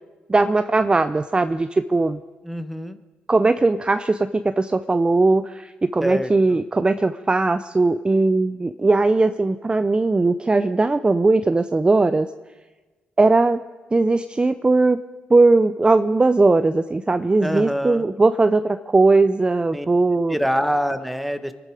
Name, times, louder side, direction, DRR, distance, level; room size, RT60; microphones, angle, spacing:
voice 1, 0.3-2.2 3.3-12.3 13.2-13.6 13.9-15.0 15.3-20.4, right 3 dB, 25° right, 10 dB, 0.6 m, -19 dB
voice 2, 2.4-3.0 6.0-6.6 17.4-18.0 19.7-19.9 20.3-21.5, equal, ahead, 9 dB, 1.5 m, -25 dB
24.0 x 12.0 x 5.0 m, 1.2 s
supercardioid pair, 50°, 4 cm